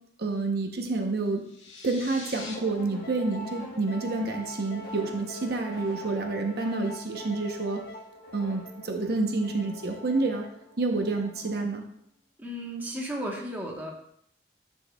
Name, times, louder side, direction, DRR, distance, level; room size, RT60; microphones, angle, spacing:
voice 1, 0.2-1.4 1.8-7.8 8.3-10.4 10.8-11.8, right 3 dB, 60° right, 3 dB, 0.8 m, -28 dB
sound 1, 1.4-2.6, left 4 dB, 90° left, 1.5 m, -43 dB
sound 2, 2.4-11.8, equal, 60° left, 1.2 m, -43 dB
voice 2, 12.4-13.9, equal, 10° right, -2 dB, 1.0 m, -34 dB
11.0 x 4.5 x 2.2 m, 0.68 s
head